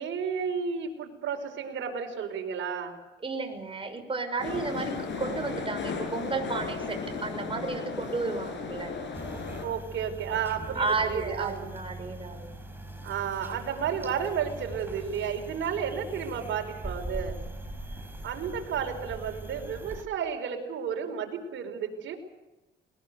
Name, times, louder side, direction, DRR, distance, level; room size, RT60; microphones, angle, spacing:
voice 1, 0.0-3.0 9.6-11.7 13.0-17.4 18.2-22.2, right 7 dB, 75° right, 3 dB, 5.2 m, -32 dB
voice 2, 3.2-8.9 10.7-12.5, right 3 dB, 25° right, 5 dB, 6.3 m, -32 dB
sound 1, 4.4-9.7, left 4 dB, 65° left, 6.3 m, -35 dB
sound 2, 9.1-20.0, right 1 dB, 10° right, 5.0 m, -41 dB
21.5 x 21.0 x 8.1 m, 1.0 s
cardioid pair, 90°, 20 cm